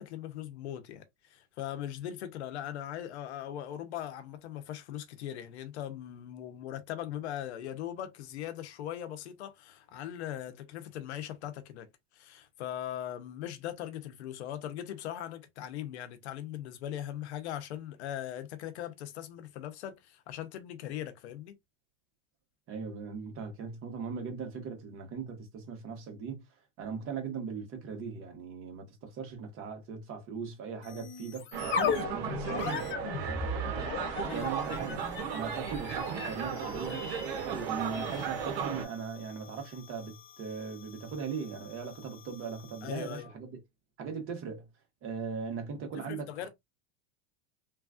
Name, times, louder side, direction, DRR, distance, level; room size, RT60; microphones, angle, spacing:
voice 1, 0.0-11.9 12.1-21.6 34.2-34.5 42.8-43.3 45.9-46.5, left 11 dB, 90° left, 0.7 m, -40 dB
voice 2, 22.7-26.4 26.8-33.9 34.3-43.6 44.0-44.7 45.0-46.5, right 5 dB, 40° right, 1.3 m, -39 dB
sound 1, 30.8-43.3, left 5 dB, 35° left, 0.7 m, -39 dB
sound 2, 31.5-38.9, right 7 dB, 70° right, 0.9 m, -35 dB
3.0 x 2.3 x 2.4 m
supercardioid pair, 125°, 32 cm